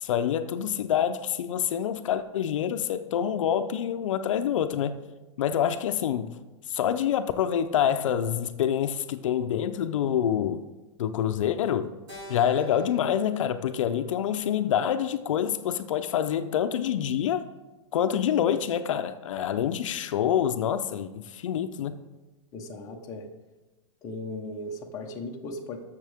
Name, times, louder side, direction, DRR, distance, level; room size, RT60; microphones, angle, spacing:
voice 1, 0.0-5.0 5.4-6.3 6.7-10.6 11.0-11.9 12.3-17.5 17.9-21.9, left 9 dB, 75° left, 0.6 m, -26 dB
Keyboard (musical), 12.1-16.5, right 2 dB, 25° right, 3.6 m, -48 dB
voice 2, 22.5-23.2 24.0-25.8, left 2 dB, 20° left, 1.0 m, -37 dB
14.0 x 6.5 x 3.5 m
supercardioid pair, 165°, 16 cm